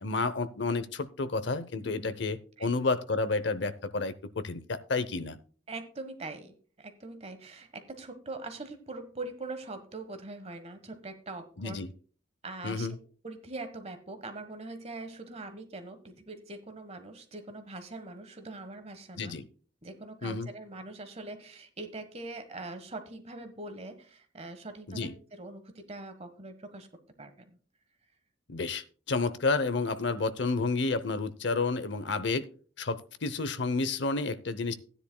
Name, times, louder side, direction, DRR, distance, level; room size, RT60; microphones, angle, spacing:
voice 1, 0.0-5.4 11.6-11.9 12.6-13.0 19.2-19.5 20.2-20.5 24.9-25.1 28.5-32.5 32.8-34.7, left 3 dB, 65° left, 13 dB, 0.7 m, -30 dB
voice 2, 1.8-2.2 2.6-2.7 5.7-11.8 12.4-12.9 13.2-19.4 19.8-26.9 27.2-27.6, right 2 dB, 30° right, 8 dB, 1.3 m, -42 dB
15.5 x 10.0 x 2.2 m, 0.41 s
head